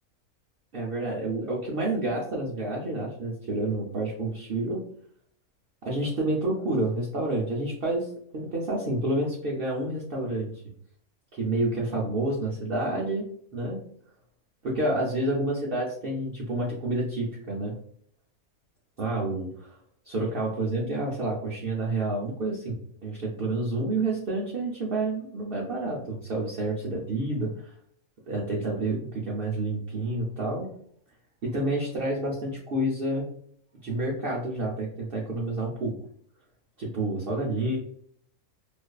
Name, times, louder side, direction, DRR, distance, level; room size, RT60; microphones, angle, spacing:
voice 1, 0.7-4.8 5.8-10.5 11.3-13.8 14.6-17.8 19.0-19.8 20.1-22.8 23.0-27.7 28.3-30.7 31.4-33.3 33.8-35.9 36.8-37.8, right 2 dB, 70° right, -4 dB, 0.5 m, -29 dB
2.5 x 2.4 x 2.2 m, 0.64 s
omnidirectional pair, 1.5 m